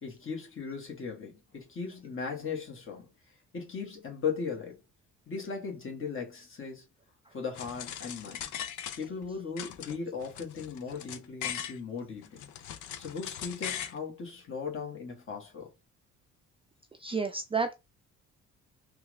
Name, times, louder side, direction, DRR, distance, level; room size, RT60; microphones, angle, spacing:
voice 1, 0.0-4.8 5.3-6.9 7.3-8.4 9.0-12.4 13.0-15.7, left 5 dB, 45° left, 1.5 m, -38 dB
sound 1, 7.5-9.3 9.6-11.8 12.2-14.0, left 10 dB, 75° left, 0.5 m, -39 dB
voice 2, 17.0-17.7, right 4 dB, 20° right, 0.4 m, -30 dB
3.5 x 2.4 x 3.1 m
cardioid pair, 90°, 30 cm